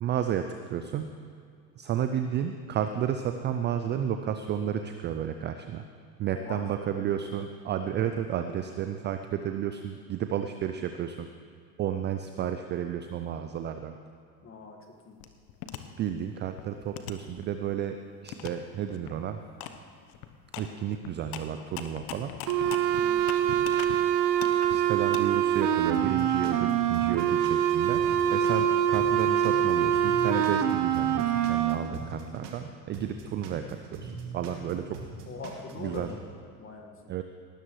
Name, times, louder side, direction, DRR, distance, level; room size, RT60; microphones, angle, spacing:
voice 1, 0.0-1.1 1.8-5.8 6.2-11.3 11.8-14.0 16.0-18.0 18.2-19.4 20.6-22.3 24.7-28.0 28.3-35.0 35.8-36.1 37.1-37.2, right 9 dB, 25° right, 7 dB, 0.4 m, -32 dB
voice 2, 6.3-7.0 14.4-14.8 15.1-15.2 22.9-23.3 35.3-37.1, left 4 dB, 25° left, 2 dB, 1.7 m, -43 dB
sound 1, 15.2-15.8 16.3-17.9 18.3-18.5 18.9-19.1 19.6-19.8 20.0-24.0 24.3-25.2, left 11 dB, 50° left, 1.0 m, -40 dB
sound 2, 22.5-31.7, right 10 dB, 40° right, 0.9 m, -25 dB
sound 3, 25.9-28.6 28.9-32.6 32.9-36.1, right 4 dB, 65° right, 2.5 m, -42 dB
18.5 x 12.5 x 3.1 m, 2.2 s
hypercardioid pair, 85°, 49 cm